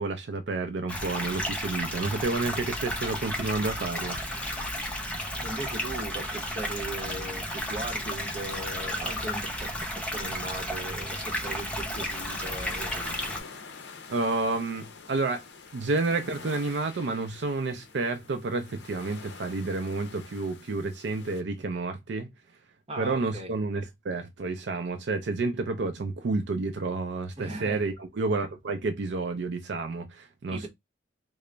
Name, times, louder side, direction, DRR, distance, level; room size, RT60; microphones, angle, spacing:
voice 1, 0.0-4.2 4.5-4.7 14.1-15.4 15.7-22.3 23.0-30.7, right 3 dB, 65° right, 0.4 m, -30 dB
sound 1, 0.9-13.4, equal, 5° left, 0.7 m, -33 dB
voice 2, 5.4-13.0 22.9-23.5 27.4-27.8 30.5-30.7, right 2 dB, 30° right, 0.9 m, -38 dB
sound 2, 11.2-21.4, left 5 dB, 65° left, 0.6 m, -46 dB
3.8 x 2.0 x 3.2 m
head